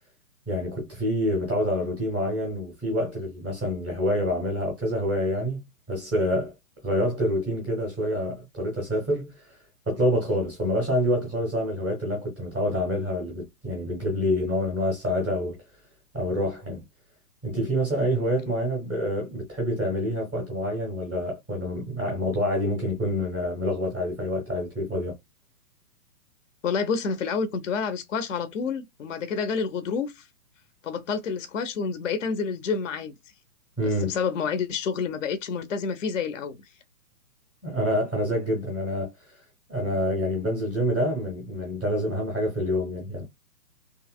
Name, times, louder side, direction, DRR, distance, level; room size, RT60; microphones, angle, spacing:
voice 1, 0.5-6.5 6.8-9.6 9.9-15.6 16.1-16.8 17.4-25.1 33.8-34.2 37.6-39.4 39.7-43.2, equal, 5° right, 0.5 m, -27 dB
voice 2, 26.6-30.3 30.8-33.2 33.8-36.7, left 5 dB, 55° left, 0.5 m, -29 dB
2.8 x 2.7 x 2.3 m
figure-of-eight pair, 130°, 48 cm